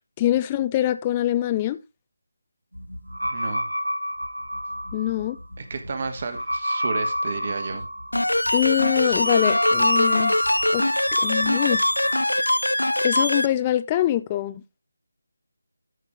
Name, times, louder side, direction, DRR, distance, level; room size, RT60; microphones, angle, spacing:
voice 1, 0.2-1.8 4.9-5.4 8.5-10.8 11.2-11.8 13.0-14.6, left 13 dB, 15° left, 0.4 m, -24 dB
sound 1, 2.7-12.2, equal, 80° right, 1.3 m, -29 dB
voice 2, 3.3-3.7 5.6-7.9, right 4 dB, 35° right, 1.5 m, -32 dB
sound 2, 8.1-13.5, left 1 dB, 75° left, 0.5 m, -22 dB
13.5 x 5.9 x 3.5 m
figure-of-eight pair, 155°, 0 cm